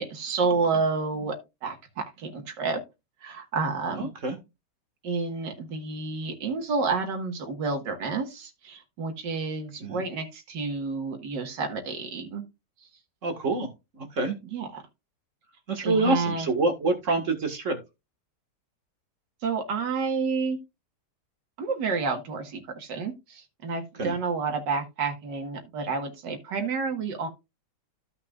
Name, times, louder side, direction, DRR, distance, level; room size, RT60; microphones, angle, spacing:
voice 1, 0.0-1.4 1.6-2.8 3.2-4.1 5.0-12.4 14.5-14.7 15.8-16.5 19.4-20.6 21.6-27.3, right 4 dB, 80° right, 2.2 m, -30 dB
voice 2, 4.0-4.4 9.8-10.0 13.2-13.7 14.0-14.4 15.7-17.8 24.0-24.2, right 2 dB, 45° right, 1.9 m, -26 dB
14.5 x 5.8 x 2.4 m
omnidirectional pair, 1.9 m